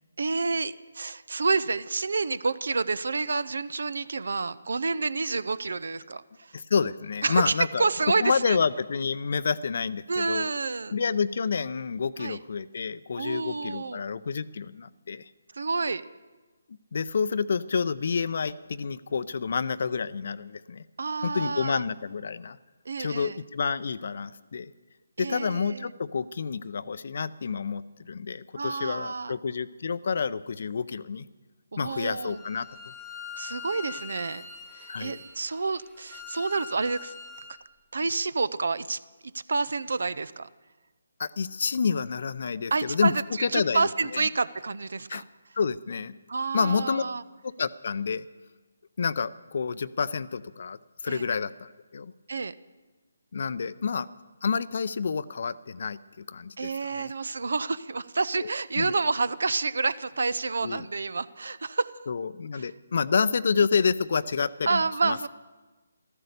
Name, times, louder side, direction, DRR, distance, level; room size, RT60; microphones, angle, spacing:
voice 1, 0.2-6.5 7.2-8.6 10.1-11.0 12.2-12.4 13.2-14.0 15.5-16.0 21.0-21.8 22.9-23.4 25.2-25.9 28.5-29.4 31.7-32.4 33.4-37.1 37.9-39.0 39.5-40.5 42.7-45.3 46.3-47.2 51.1-51.3 52.3-52.5 56.6-61.9 62.6-62.7 64.7-65.3, right 4 dB, 65° right, 17 dB, 0.6 m, -29 dB
voice 2, 6.5-7.9 8.2-10.5 10.9-15.3 16.9-20.8 21.2-22.6 23.0-24.7 25.2-31.2 31.8-32.9 34.9-35.2 41.2-43.1 43.4-44.3 45.1-45.2 45.6-46.2 46.5-47.0 47.4-48.3 49.0-50.8 51.0-52.1 53.3-54.1 54.4-57.1 58.4-58.5 58.8-58.9 60.6-60.9 62.1-65.2, left 5 dB, 55° left, 16 dB, 0.6 m, -29 dB
Bowed string instrument, 32.2-37.6, left 6 dB, ahead, 1.2 m, -43 dB
14.5 x 13.5 x 6.7 m, 1.3 s
figure-of-eight pair, 150°, 0 cm